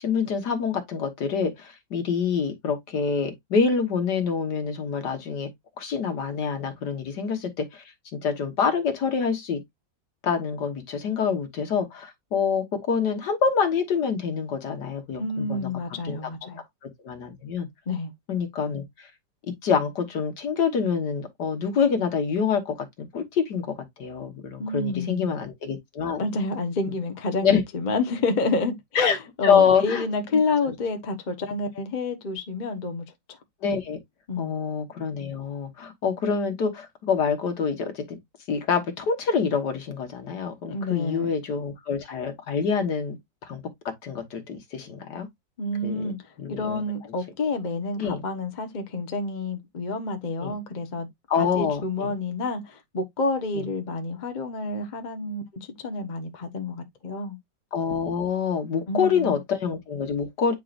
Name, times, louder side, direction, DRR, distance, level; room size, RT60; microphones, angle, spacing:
voice 1, 0.0-5.5 5.8-7.8 8.1-9.6 10.2-15.7 16.0-16.5 17.0-17.7 18.3-19.1 19.6-26.2 27.4-27.6 29.0-29.2 29.4-30.0 33.6-34.0 34.4-38.2 38.5-43.2 43.4-45.3 45.8-46.1 46.4-46.8 48.0-48.2 50.4-50.5 51.3-52.1 57.7-60.5, left 6 dB, 65° left, 1.9 m, -26 dB
voice 2, 15.2-16.6 17.9-18.1 24.6-25.3 26.2-33.4 34.3-34.6 40.6-41.3 45.6-46.2 46.5-51.1 51.4-57.4 58.9-59.4, left 3 dB, 30° left, 0.9 m, -29 dB
9.1 x 4.7 x 2.5 m
omnidirectional pair, 2.0 m